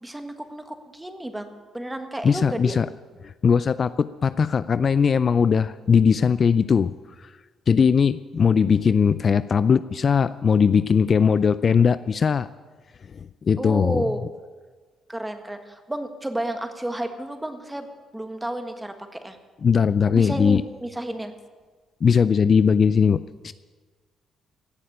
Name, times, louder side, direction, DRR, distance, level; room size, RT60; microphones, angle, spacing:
voice 1, 0.0-2.8 13.6-14.2 15.1-17.9 18.1-19.4 20.1-21.3, right 1 dB, 10° right, 7 dB, 1.6 m, -31 dB
voice 2, 2.2-2.9 3.2-6.9 7.2-7.3 7.7-12.5 13.4-14.0 19.6-20.6 22.0-23.5, left 6 dB, 45° left, 15 dB, 0.4 m, -19 dB
17.0 x 6.6 x 9.9 m, 1.4 s
cardioid pair, 90°, 0 cm